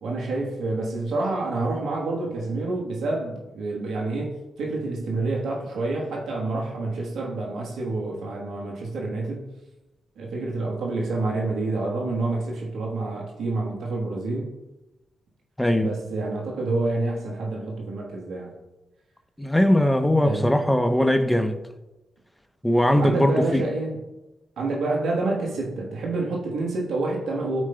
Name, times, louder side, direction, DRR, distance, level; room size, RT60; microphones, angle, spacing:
voice 1, 0.0-9.4 10.2-14.5 15.8-18.5 20.2-20.5 23.0-24.0 24.6-27.6, right 2 dB, 75° right, 1.3 m, -28 dB
voice 2, 15.6-15.9 19.4-21.5 22.6-23.6, left 1 dB, 10° left, 0.8 m, -20 dB
14.0 x 4.8 x 2.3 m
supercardioid pair, 45°, 0 cm